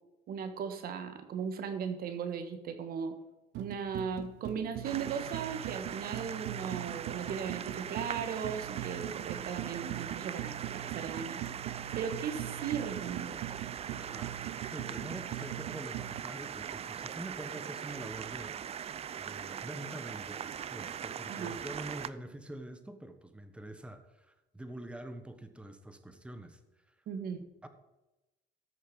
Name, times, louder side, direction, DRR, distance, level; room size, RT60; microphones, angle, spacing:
voice 1, 0.3-3.2 3.6-11.4 11.9-13.4 21.3-21.6 27.1-27.5, right 7 dB, 65° right, 9 dB, 1.4 m, -37 dB
sound 1, 3.5-16.2, right 14 dB, 85° right, 0.6 m, -42 dB
sound 2, 4.8-22.1, right 8 dB, 40° right, 0.5 m, -41 dB
voice 2, 14.0-14.3 14.7-18.6 19.2-26.6 27.6-27.7, right 1 dB, 5° right, 8 dB, 1.1 m, -45 dB
14.0 x 6.4 x 5.4 m, 1.0 s
cardioid pair, 110°, 17 cm